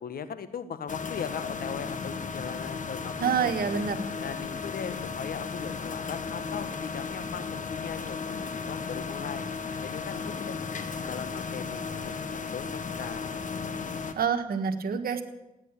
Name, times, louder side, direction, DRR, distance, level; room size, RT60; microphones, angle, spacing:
voice 1, 0.0-3.1 3.4-3.5 4.2-9.4 9.8-10.6 11.0-13.4, left 7 dB, 70° left, 11 dB, 1.4 m, -39 dB
sound 1, 0.9-14.1, left 5 dB, 55° left, 1.6 m, -35 dB
voice 2, 3.2-4.0 14.2-15.2, right 6 dB, 70° right, 7 dB, 1.7 m, -27 dB
16.5 x 9.6 x 8.4 m, 0.99 s
cardioid pair, 65°, 16 cm